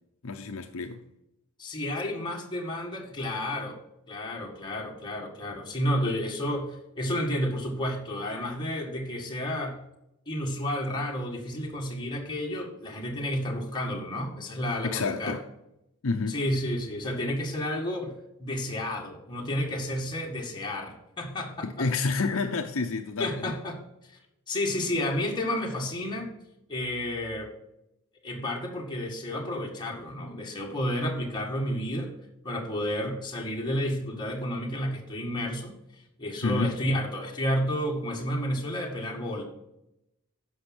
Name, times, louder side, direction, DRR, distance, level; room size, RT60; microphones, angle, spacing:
voice 1, 0.2-1.0 9.5-9.6 10.7-10.8 14.9-15.4 16.0-16.4 21.6-23.5 36.4-36.7, left 4 dB, 60° left, 0.7 m, -29 dB
voice 2, 1.6-3.8 4.1-9.8 10.3-15.4 16.3-18.1 18.4-21.9 23.2-23.8 24.5-26.3 26.7-27.5 28.2-32.1 32.4-35.7 36.2-39.4, left 1 dB, 20° left, 1.9 m, -31 dB
9.9 x 6.3 x 6.0 m
head